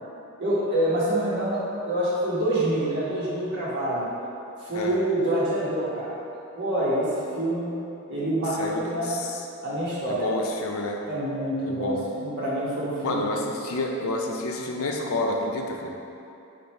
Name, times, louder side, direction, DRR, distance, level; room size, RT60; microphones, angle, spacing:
voice 1, 0.4-4.1 4.6-6.1 6.6-7.1 7.3-7.7 8.1-9.1 9.6-10.4 11.0-13.4, right 1 dB, 55° right, -8 dB, 1.1 m, -26 dB
voice 2, 8.6-9.5 10.1-11.0 11.7-12.1 13.0-15.9, left 2 dB, 85° left, 1 dB, 0.5 m, -29 dB
4.7 x 2.5 x 4.2 m, 2.8 s
head